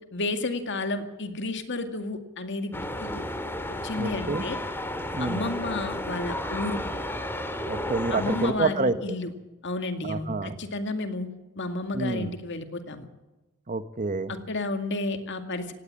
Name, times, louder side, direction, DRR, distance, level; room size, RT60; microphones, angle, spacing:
voice 1, 0.1-3.2 3.8-4.6 5.2-6.8 8.1-9.3 9.6-11.3 11.6-13.1 14.3-15.7, left 2 dB, 55° left, 7 dB, 2.2 m, -31 dB
sound 1, 2.7-8.5, left 1 dB, 10° left, 2.0 m, -33 dB
voice 2, 4.0-4.4 5.1-5.5 7.7-9.2 10.0-10.6 11.9-12.3 13.7-14.3, right 3 dB, 35° right, 13 dB, 0.9 m, -28 dB
17.5 x 17.0 x 8.7 m, 1.1 s
head